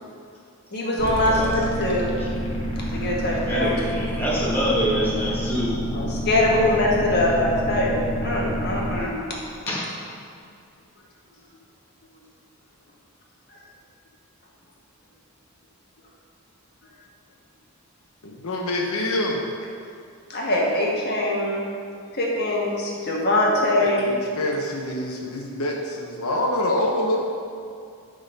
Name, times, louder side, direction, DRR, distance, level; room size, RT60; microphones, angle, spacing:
voice 1, 0.7-2.1 2.9-3.7 5.9-9.2 20.3-21.6 22.1-24.1, left 1 dB, 50° left, -4 dB, 1.5 m, -23 dB
sound 1, 1.0-9.0, equal, 25° left, 1.2 m, -28 dB
voice 2, 1.2-1.6 2.2-2.3 3.4-5.7 6.5-6.9 9.7-9.9, equal, 10° left, -8 dB, 1.8 m, -26 dB
voice 3, 18.2-19.4 23.8-27.2, left 1 dB, 80° left, -1 dB, 0.9 m, -26 dB
11.5 x 3.8 x 5.3 m, 2.3 s
head